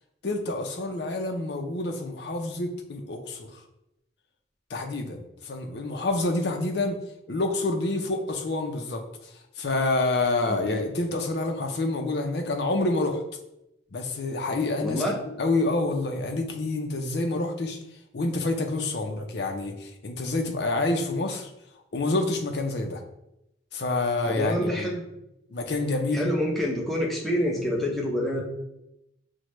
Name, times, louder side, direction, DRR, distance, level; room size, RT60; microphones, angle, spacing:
voice 1, 0.2-3.6 4.7-7.0 7.3-9.0 9.6-13.2 13.9-15.0 15.4-17.8 18.1-21.5 21.9-23.0 23.7-24.9 25.5-26.3, left 2 dB, 60° left, 4 dB, 0.6 m, -27 dB
voice 2, 10.5-10.8 14.8-15.2 24.2-25.1 26.1-28.4, left 1 dB, ahead, -3 dB, 0.6 m, -27 dB
6.1 x 2.1 x 3.0 m, 0.86 s
head